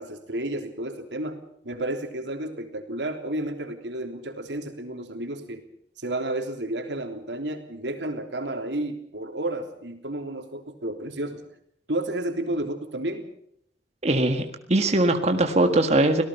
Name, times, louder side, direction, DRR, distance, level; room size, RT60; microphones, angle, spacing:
voice 1, 0.0-5.6 6.0-11.4 11.9-13.3, right 1 dB, 90° right, 5 dB, 3.4 m, -31 dB
voice 2, 14.0-14.4 14.7-16.2, right 2 dB, 40° right, 5 dB, 1.7 m, -20 dB
25.5 x 18.0 x 5.8 m, 0.68 s
head